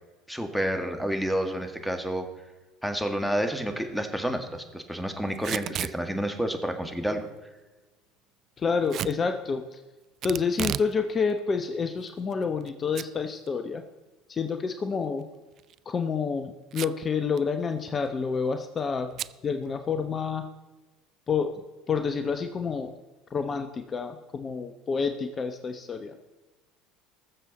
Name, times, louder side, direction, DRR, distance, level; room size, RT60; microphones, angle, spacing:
voice 1, 0.3-2.3 2.8-7.3, equal, ahead, 6 dB, 2.0 m, -29 dB
Packing tape duct tape / Tearing, 5.3-6.0 8.9-9.2 10.2-10.9 11.3-11.4 12.1-12.7 13.0-13.1 13.5-13.6 15.5-15.8 16.7-17.1 17.4-17.5 17.7-18.1 19.2-19.4, right 11 dB, 50° right, 0.4 m, -33 dB
voice 2, 8.6-9.8 10.2-13.8 14.3-15.2 15.9-19.1 19.4-20.5 21.3-21.6 21.9-22.9 23.3-26.1, left 5 dB, 30° left, 8 dB, 1.0 m, -28 dB
20.0 x 7.5 x 4.2 m, 1.2 s
hypercardioid pair, 75°, 0 cm